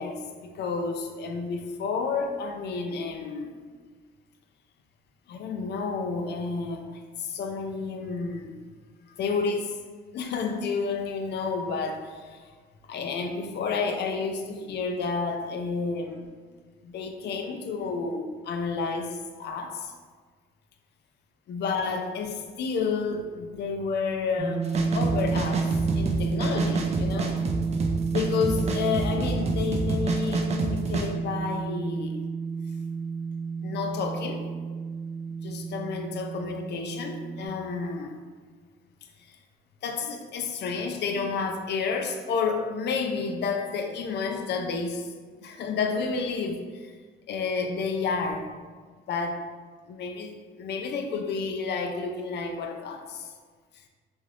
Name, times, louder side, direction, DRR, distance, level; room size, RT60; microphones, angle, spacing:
voice 1, 0.0-3.6 5.3-8.5 9.1-9.8 10.1-12.5 12.9-16.3 16.8-19.9 21.5-24.7 24.9-25.7 25.9-27.4 28.1-32.2 33.6-34.4 35.4-38.1 39.3-39.4 39.8-45.1 45.4-46.9 47.3-48.5 49.1-49.4 49.9-53.3, left 4 dB, 60° left, 4 dB, 0.4 m, -30 dB
sound 1, 24.4-37.5, right 5 dB, 20° right, 1.1 m, -31 dB
sound 2, 24.6-31.1, right 2 dB, 35° right, 0.3 m, -29 dB
3.2 x 2.5 x 2.4 m, 1.5 s
cardioid pair, 90°, 20 cm